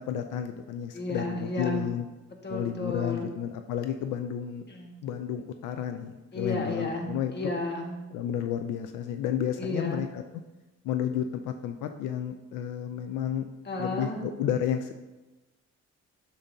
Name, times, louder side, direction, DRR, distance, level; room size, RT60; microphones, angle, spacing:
voice 1, 0.0-2.1 2.5-4.6 5.0-7.3 8.1-10.2 10.8-13.4 13.8-14.9, left 9 dB, 85° left, 7 dB, 0.5 m, -31 dB
voice 2, 0.9-1.9 2.4-3.3 4.7-5.0 6.3-8.0 9.6-10.0 13.6-14.3, left 2 dB, 35° left, 2 dB, 1.4 m, -32 dB
8.8 x 6.7 x 2.7 m, 1.1 s
cardioid pair, 90°, 30 cm